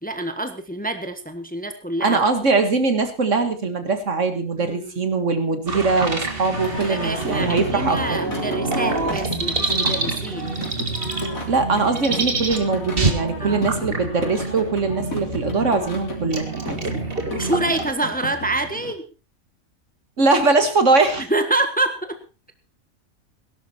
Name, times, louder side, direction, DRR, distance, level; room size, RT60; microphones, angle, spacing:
voice 1, 0.0-2.2 4.6-5.1 6.8-10.6 13.4-13.7 17.3-19.1 21.2-22.2, right 2 dB, 5° left, 8 dB, 1.3 m, -26 dB
voice 2, 2.0-8.2 11.5-16.8 20.2-21.2, right 3 dB, 65° right, 8 dB, 2.1 m, -21 dB
sound 1, 5.7-17.9, right 3 dB, 45° right, 2.1 m, -27 dB
Singing, 6.5-18.9, left 1 dB, 85° left, 3.8 m, -33 dB
18.0 x 11.5 x 4.3 m, 0.33 s
omnidirectional pair, 1.4 m